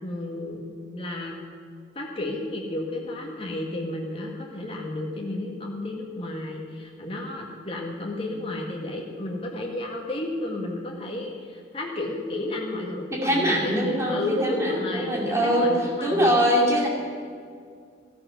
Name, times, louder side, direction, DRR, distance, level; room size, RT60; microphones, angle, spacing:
voice 1, 0.0-1.4 1.9-16.6, left 1 dB, 30° left, -1 dB, 1.7 m, -32 dB
voice 2, 13.1-16.9, equal, 15° right, -2 dB, 2.4 m, -23 dB
14.0 x 12.0 x 5.7 m, 2.1 s
head